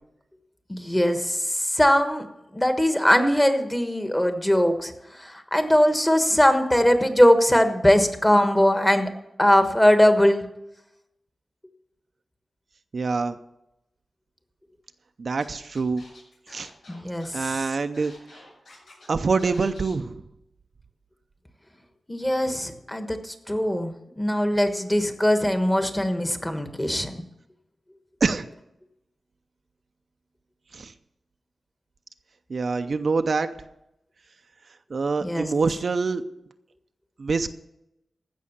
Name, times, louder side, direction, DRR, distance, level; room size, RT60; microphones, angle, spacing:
voice 1, 0.7-2.3 2.5-4.9 5.2-9.1 9.4-10.4 16.9-17.4 22.1-27.2 35.2-35.5, equal, 10° left, 7 dB, 1.3 m, -21 dB
voice 2, 12.9-13.4 15.2-16.0 16.5-16.7 17.3-18.1 19.1-20.2 28.2-28.5 30.7-30.9 32.5-33.5 34.9-36.2 37.2-37.5, right 4 dB, 55° right, 9 dB, 0.6 m, -25 dB
Scratching (performance technique), 15.4-15.5 15.7-19.1 19.4-19.9, left 2 dB, 85° left, 6.0 m, -50 dB
15.0 x 6.2 x 7.1 m, 0.87 s
wide cardioid pair, 100°, 0 cm